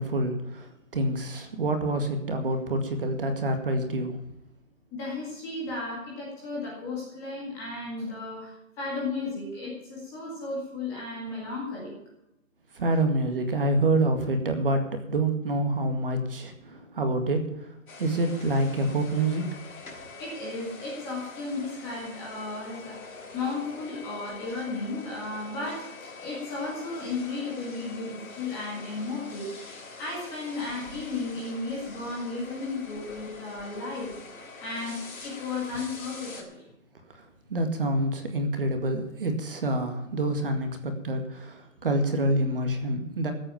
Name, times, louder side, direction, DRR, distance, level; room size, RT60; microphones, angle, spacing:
voice 1, 0.0-4.2 12.7-17.4 18.0-19.4 37.5-43.3, right 1 dB, 40° right, 6 dB, 2.1 m, -27 dB
voice 2, 4.9-11.9 12.9-13.0 20.2-29.6 30.0-34.1 34.6-36.6, left 3 dB, 10° left, -4 dB, 1.9 m, -34 dB
sound 1, 17.9-36.4, left 3 dB, 75° left, 5.7 m, -44 dB
15.0 x 8.8 x 7.2 m, 0.85 s
hypercardioid pair, 180°, 41 cm